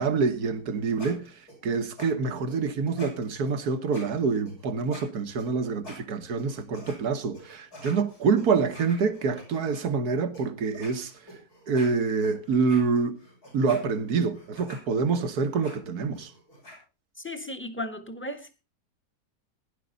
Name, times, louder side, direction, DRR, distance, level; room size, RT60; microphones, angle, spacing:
voice 1, 0.0-1.3 1.6-11.1 11.7-13.2 13.5-16.3, right 5 dB, 75° right, 1.8 m, -26 dB
sound 1, 0.6-7.0 7.3-9.8 10.3-10.5 10.7-16.8, left 1 dB, 70° left, 6.8 m, -47 dB
voice 2, 17.2-18.6, left 1 dB, 10° left, 1.4 m, -35 dB
16.5 x 11.0 x 4.0 m
omnidirectional pair, 1.7 m